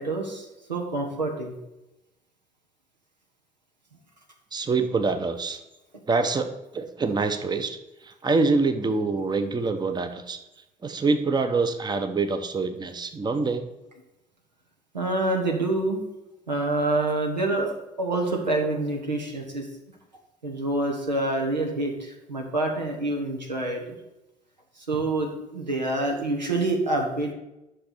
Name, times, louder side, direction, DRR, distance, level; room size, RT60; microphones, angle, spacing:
voice 1, 0.0-1.6 9.4-9.5 14.9-16.0 16.5-19.7 20.4-24.0 24.9-27.3, right 2 dB, 85° right, 1 dB, 1.1 m, -27 dB
voice 2, 4.5-5.6 6.1-10.4 10.8-13.7, right 3 dB, 20° right, 8 dB, 0.8 m, -25 dB
10.0 x 6.0 x 4.0 m, 0.95 s
figure-of-eight pair, 50°, 21 cm